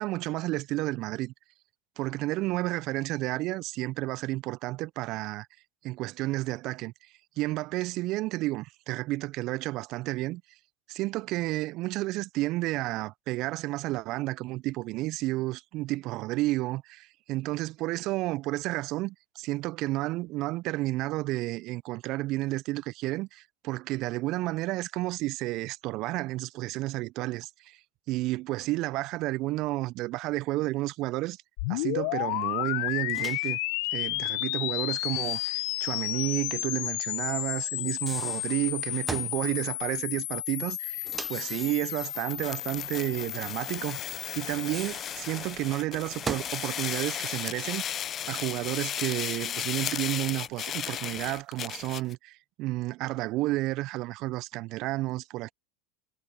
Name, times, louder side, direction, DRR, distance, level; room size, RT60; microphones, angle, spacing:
voice 1, 0.0-1.3 2.0-5.5 5.8-6.9 7.4-10.4 10.9-27.8 28.1-31.4 31.7-33.6 33.9-47.8 48.3-55.5, right 19 dB, 50° right, 0.7 m, -31 dB
sound 1, 31.6-44.9, left 28 dB, 60° left, 1.5 m, -32 dB
Microwave oven, 33.1-33.5 34.9-36.3 36.6-36.7 37.8-39.4 41.0-42.4 44.4-46.6, right 4 dB, 20° right, 0.9 m, -41 dB
sound 2, 42.3-52.1, left 10 dB, 35° left, 1.2 m, -35 dB
figure-of-eight pair, 80°, 0 cm